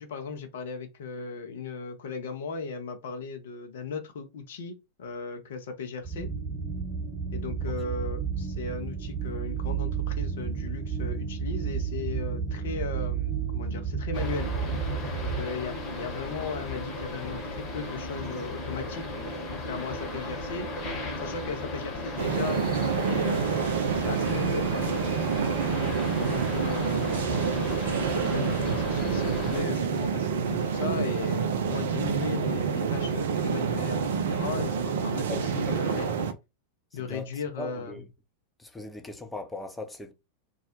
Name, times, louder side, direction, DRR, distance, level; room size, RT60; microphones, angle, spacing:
voice 1, 0.0-6.3 7.3-14.5 15.2-19.2 19.5-20.7 21.2-25.0 26.2-36.1 36.9-38.0, left 4 dB, 60° left, 0.6 m, -37 dB
sound 1, 6.0-15.4, right 6 dB, 15° right, 1.0 m, -31 dB
sound 2, 14.1-29.6, left 2 dB, 35° left, 1.0 m, -35 dB
sound 3, 22.2-36.3, right 6 dB, 60° right, 0.3 m, -28 dB
voice 2, 35.3-36.3 36.9-37.3 37.6-38.1 38.6-40.1, left 1 dB, 5° left, 0.5 m, -39 dB
2.3 x 2.0 x 2.7 m
figure-of-eight pair, 90°, 0 cm